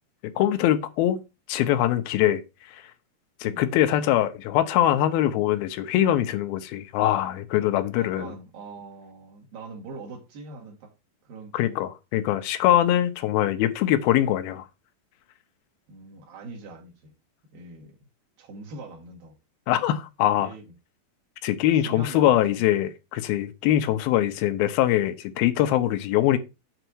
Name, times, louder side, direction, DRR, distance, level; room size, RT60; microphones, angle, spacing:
voice 1, 0.4-1.2 1.5-2.4 2.7-2.8 3.4-8.3 11.5-14.7 19.7-20.5 21.4-26.4, left 12 dB, 75° left, 2.7 m, -23 dB
voice 2, 8.0-10.9 11.2-11.8 15.9-17.1 17.5-18.0 18.4-19.3 20.4-20.7 21.8-22.6, right 3 dB, 70° right, 3.6 m, -42 dB
8.0 x 4.1 x 6.2 m
omnidirectional pair, 4.5 m